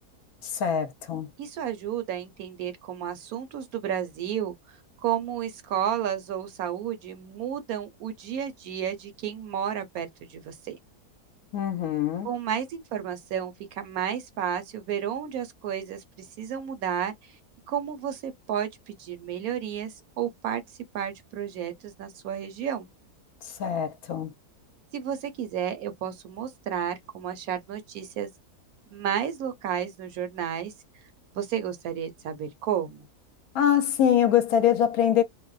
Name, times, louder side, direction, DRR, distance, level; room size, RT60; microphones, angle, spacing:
voice 1, 0.4-1.3 11.5-12.3 23.4-24.3 33.5-35.2, left 9 dB, 75° left, 1.0 m, -24 dB
voice 2, 1.4-4.5 5.0-10.8 12.2-17.1 17.7-20.6 20.9-22.9 24.9-28.3 28.9-30.7 31.3-33.1, right 9 dB, 70° right, 1.0 m, -32 dB
2.6 x 2.0 x 2.3 m
omnidirectional pair, 1.7 m